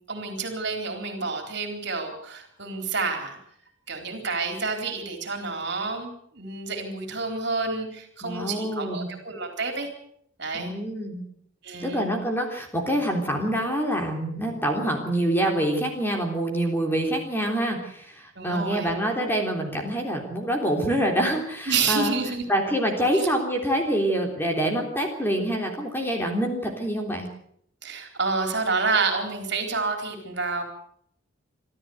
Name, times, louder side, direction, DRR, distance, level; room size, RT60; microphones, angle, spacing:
voice 1, 0.1-3.4 3.9-9.9 10.4-10.7 11.6-12.1 18.4-18.9 21.7-22.4 22.8-23.3 27.8-30.6, right 4 dB, 55° right, 4 dB, 4.1 m, -29 dB
voice 2, 8.2-9.1 10.5-11.2 11.8-22.1 22.5-27.3, right 1 dB, 10° left, 2 dB, 3.5 m, -26 dB
25.5 x 13.5 x 8.0 m, 0.69 s
head